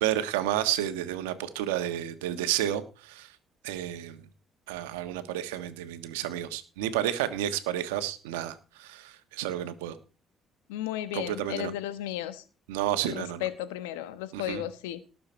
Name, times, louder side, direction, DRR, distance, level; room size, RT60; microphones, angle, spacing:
voice 1, 0.0-3.3 3.6-4.2 4.7-10.0 11.1-11.7 12.7-13.5 14.3-14.6, right 12 dB, 90° right, 10 dB, 1.3 m, -31 dB
voice 2, 10.7-12.4 13.0-15.0, left 13 dB, 90° left, 12 dB, 1.3 m, -34 dB
18.5 x 6.9 x 4.5 m, 0.34 s
hypercardioid pair, 60°, 0 cm